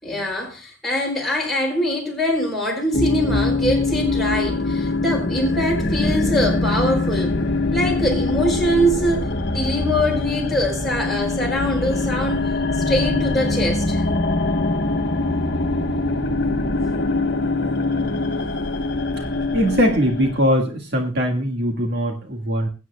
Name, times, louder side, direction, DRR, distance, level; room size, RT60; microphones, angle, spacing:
voice 1, 0.0-7.4 7.7-12.5 12.7-14.0, equal, ahead, 4.6 m, -23 dB
sound 1, 2.9-20.4, left 2 dB, 55° left, 1.2 m, -23 dB
voice 2, 19.5-22.7, equal, 55° right, 1.8 m, -21 dB
21.5 x 9.3 x 2.3 m
head